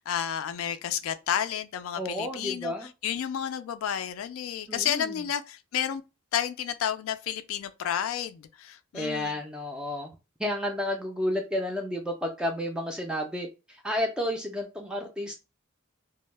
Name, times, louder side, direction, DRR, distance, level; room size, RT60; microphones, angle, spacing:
voice 1, 0.0-6.0 6.3-9.4, left 9 dB, 90° left, 0.3 m, -31 dB
voice 2, 2.0-2.9 4.7-5.2 8.9-10.1 10.4-15.4, left 1 dB, 5° right, 0.3 m, -31 dB
2.1 x 2.0 x 3.1 m
head